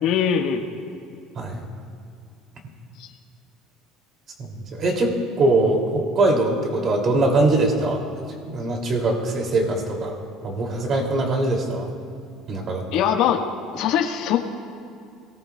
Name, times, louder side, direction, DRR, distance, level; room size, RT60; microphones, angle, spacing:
voice 1, 0.0-0.8 1.1-1.2 3.0-3.1 12.9-13.4 13.7-14.5, left 8 dB, 65° left, 2 dB, 1.6 m, -22 dB
voice 2, 4.5-8.0 8.4-10.2 10.4-11.9 12.5-12.8, right 2 dB, 35° right, 0 dB, 2.9 m, -22 dB
28.5 x 19.0 x 2.4 m, 2.4 s
cardioid pair, 150°, 0 cm